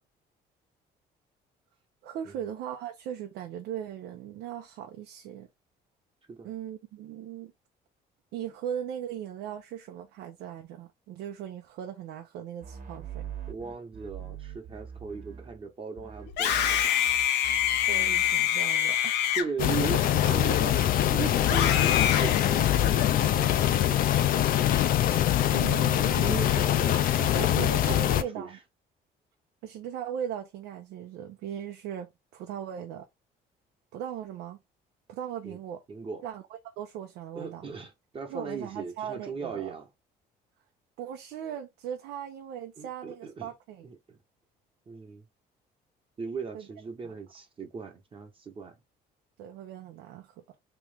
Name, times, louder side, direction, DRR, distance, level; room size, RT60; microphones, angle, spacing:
voice 1, 2.0-5.5 6.4-7.5 8.3-13.2 17.4-19.2 20.2-20.4 25.5-26.5 27.3-28.6 29.6-33.1 33.9-34.6 35.1-35.8 36.2-36.4 36.8-37.6 38.2-39.7 41.0-43.9 46.5-46.7 47.0-47.1 49.4-50.4, right 9 dB, 85° right, 0.7 m, -38 dB
sound 1, 12.6-15.7 16.0-18.5, right 8 dB, 50° right, 1.2 m, -42 dB
voice 2, 13.5-16.8 19.3-24.1 26.2-28.6 35.4-35.6 35.9-36.2 37.4-39.9 42.8-43.5 43.8-44.2 44.9-45.2 46.2-48.8, right 5 dB, 30° right, 1.0 m, -38 dB
Screaming, 16.3-20.8 21.4-23.2, left 10 dB, 85° left, 0.9 m, -27 dB
sound 2, 19.6-28.2, left 12 dB, 60° left, 0.5 m, -24 dB
3.1 x 3.1 x 3.4 m
cardioid pair, 110°, 17 cm